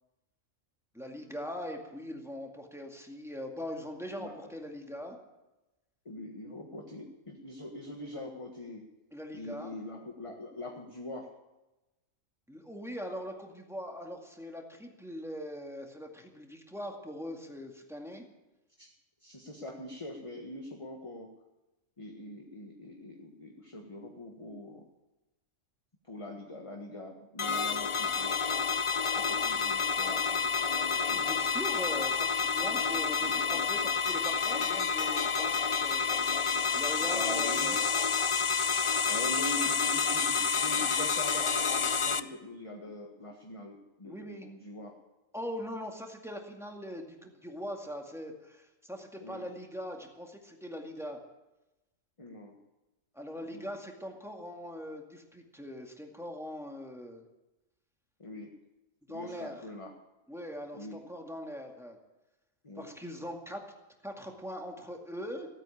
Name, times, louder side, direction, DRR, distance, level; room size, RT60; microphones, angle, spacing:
voice 1, 0.9-5.2 9.1-9.7 12.5-18.2 30.9-36.3 36.7-37.8 44.0-44.5 45.3-51.2 53.1-57.2 59.1-59.6 60.3-62.0 62.8-63.6 64.0-65.5, equal, ahead, 1 dB, 2.1 m, -41 dB
voice 2, 4.2-4.5 6.0-8.9 9.3-11.3 18.8-18.9 19.2-21.3 22.0-24.8 26.0-28.5 29.1-30.6 31.1-31.4 33.2-33.3 37.0-37.8 39.1-45.0 49.2-49.5 52.2-52.6 53.4-53.7 58.2-58.5 59.1-59.9 60.7-61.0 62.6-62.9, left 1 dB, 25° left, 1 dB, 1.5 m, -43 dB
sound 1, 27.4-42.2, left 5 dB, 55° left, 0.3 m, -29 dB
16.0 x 9.0 x 8.6 m, 1.0 s
omnidirectional pair, 1.4 m